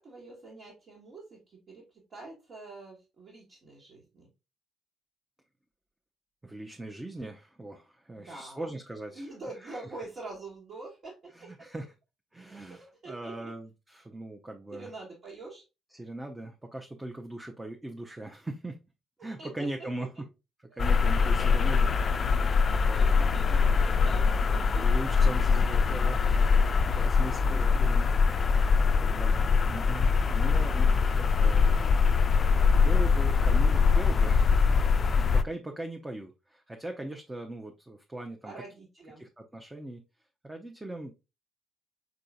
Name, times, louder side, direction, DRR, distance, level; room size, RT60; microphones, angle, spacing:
voice 1, 0.0-4.3 8.1-8.7 9.1-11.7 12.7-13.5 14.7-15.6 19.2-19.9 20.7-24.9 27.4-27.8 38.4-39.2, right 3 dB, 55° right, -5 dB, 1.6 m, -46 dB
voice 2, 6.4-9.3 9.6-9.8 11.3-11.8 12.3-14.9 15.9-18.8 19.2-20.1 20.7-21.9 22.2-23.1 24.8-32.2 32.7-38.5 39.2-40.0 40.4-41.1, right 1 dB, 15° right, 3 dB, 0.7 m, -40 dB
sound 1, 20.8-35.4, left 5 dB, 45° left, 0.3 m, -23 dB
4.8 x 3.8 x 2.3 m, 0.27 s
hypercardioid pair, 50°, 0 cm